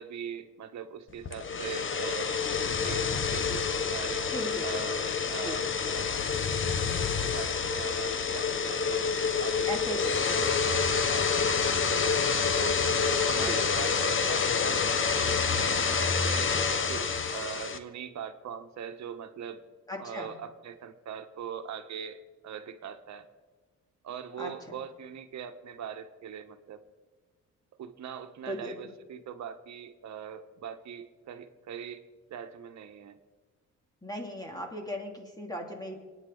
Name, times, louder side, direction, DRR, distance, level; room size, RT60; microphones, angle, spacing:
voice 1, 0.0-4.3 4.6-6.1 7.1-9.1 9.4-12.8 13.2-16.5 16.9-19.6 20.0-23.3 24.0-26.8 27.8-32.0 32.3-33.2, right 8 dB, 65° right, 8 dB, 1.4 m, -41 dB
sound 1, 1.2-17.8, left 5 dB, 40° left, 1.2 m, -28 dB
voice 2, 4.3-4.7 5.3-5.6 9.7-10.5 13.4-13.6 19.9-20.4 24.4-24.8 28.5-28.8 34.0-36.0, equal, 15° left, 1 dB, 2.8 m, -37 dB
sound 2, 8.4-14.9, left 5 dB, 55° left, 1.0 m, -32 dB
29.0 x 9.8 x 3.9 m, 1.4 s
cardioid pair, 90°, 30 cm